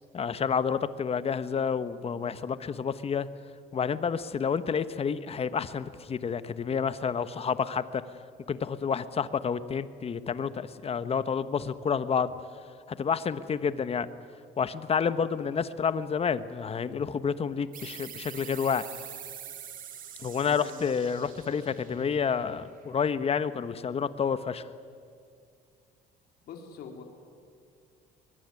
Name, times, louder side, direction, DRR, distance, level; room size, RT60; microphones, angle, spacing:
voice 1, 0.1-3.3 3.7-8.0 8.5-12.3 12.9-14.1 14.6-18.8 20.2-24.6, left 6 dB, 35° left, 13 dB, 1.2 m, -29 dB
sound 1, 17.7-23.0, right 9 dB, 55° right, 2.2 m, -45 dB
voice 2, 20.4-20.7 21.6-21.7 26.4-27.0, left 6 dB, 65° left, 3 dB, 3.7 m, -44 dB
22.5 x 21.5 x 9.8 m, 2.3 s
cardioid pair, 110°, 17 cm